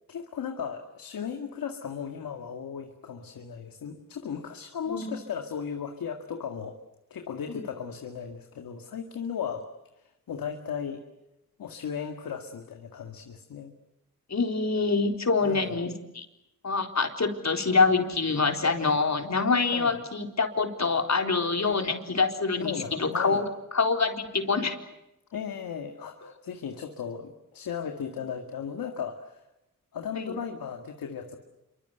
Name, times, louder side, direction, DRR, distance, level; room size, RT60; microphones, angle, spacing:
voice 1, 0.1-6.8 7.1-9.7 10.3-11.0 11.6-13.7 15.4-15.8 18.8-18.9 19.6-20.0 21.6-22.0 22.5-23.4 25.3-29.4 29.9-31.4, left 7 dB, 85° left, 5 dB, 2.1 m, -36 dB
voice 2, 14.3-16.3 16.6-23.5 23.7-24.8 30.1-30.3, left 4 dB, 50° left, 4 dB, 4.0 m, -26 dB
27.0 x 25.0 x 8.1 m, 0.89 s
cardioid pair, 50°, 34 cm